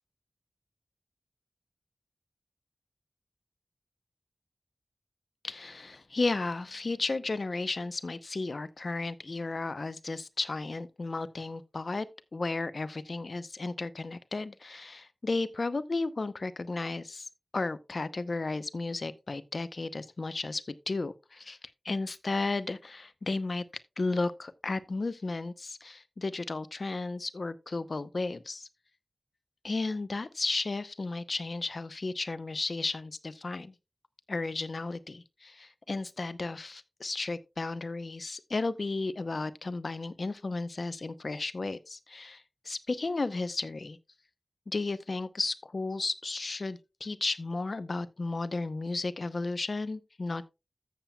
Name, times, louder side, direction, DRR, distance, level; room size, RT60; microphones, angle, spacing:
voice 1, 5.4-21.6 21.8-23.6 24.0-28.7 29.6-33.7 34.3-44.0 44.7-50.5, left 3 dB, 65° left, 0.7 m, -34 dB
14.0 x 7.5 x 2.2 m
wide cardioid pair, 65°, 0 cm